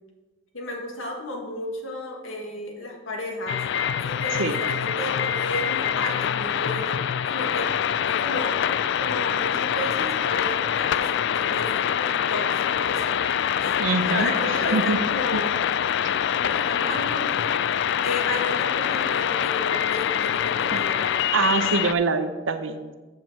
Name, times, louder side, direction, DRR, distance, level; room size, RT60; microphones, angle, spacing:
voice 1, 0.5-3.6 4.0-7.0 7.3-7.7 8.1-8.6 9.0-11.1 11.4-13.0 13.6-15.6 16.2-17.5 18.0-21.3, left 2 dB, 90° left, 1 dB, 1.8 m, -33 dB
sound 1, 3.5-21.9, left 9 dB, 60° left, 0.3 m, -25 dB
voice 2, 13.8-15.0 15.3-15.4 16.0-16.1 20.7-20.8 21.3-22.9, right 3 dB, 75° right, 8 dB, 0.7 m, -25 dB
7.1 x 5.5 x 7.2 m, 1.2 s
head